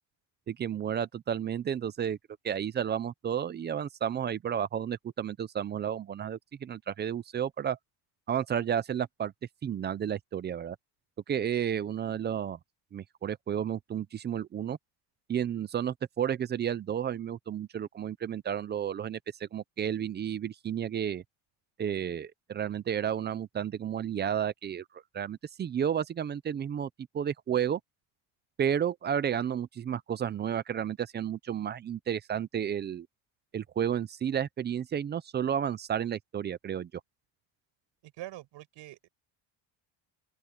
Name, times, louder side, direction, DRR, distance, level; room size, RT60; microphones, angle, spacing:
voice 1, 0.5-2.2 2.4-7.8 8.3-9.3 9.6-10.8 11.3-12.6 12.9-14.8 15.3-21.2 21.8-26.9 27.1-27.8 28.6-33.1 33.5-36.9, right 9 dB, 25° right, 0.4 m, -32 dB
voice 2, 38.0-39.1, right 16 dB, 60° right, 5.6 m, -44 dB
open air
cardioid pair, 170°, 48 cm